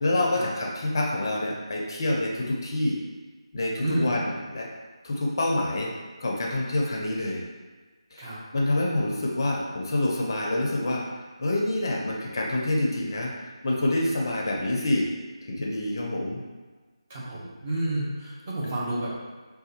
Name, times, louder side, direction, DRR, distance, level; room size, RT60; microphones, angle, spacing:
voice 1, 0.0-3.0 3.5-4.7 5.0-5.9 6.2-7.4 8.1-11.0 11.4-13.3 13.6-15.1 15.5-16.4, left 1 dB, 40° left, -2 dB, 0.5 m, -27 dB
voice 2, 17.1-19.1, right 1 dB, 20° right, -8 dB, 0.8 m, -30 dB
5.0 x 2.3 x 2.8 m, 1.4 s
figure-of-eight pair, 160°, 3 cm